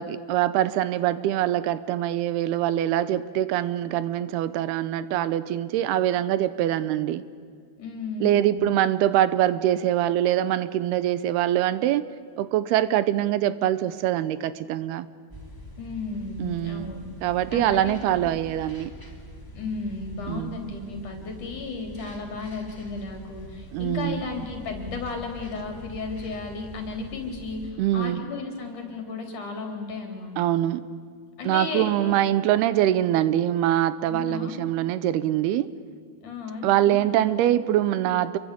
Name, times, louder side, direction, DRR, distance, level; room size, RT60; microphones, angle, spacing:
voice 1, 0.0-7.2 8.2-12.1 12.4-15.1 16.4-16.9 17.2-18.9 20.3-20.6 23.7-24.2 27.8-28.2 30.4-30.8 31.5-35.7 36.6-38.4, right 12 dB, 80° right, 2.8 m, -24 dB
voice 2, 7.8-8.7 15.8-17.1 17.5-18.0 19.5-30.5 31.4-32.2 34.1-34.7 36.2-37.1 37.5-37.8, left 4 dB, 50° left, 5.2 m, -34 dB
sound 1, 15.3-27.7, right 1 dB, 5° left, 2.8 m, -44 dB
28.0 x 23.0 x 8.6 m
omnidirectional pair, 4.6 m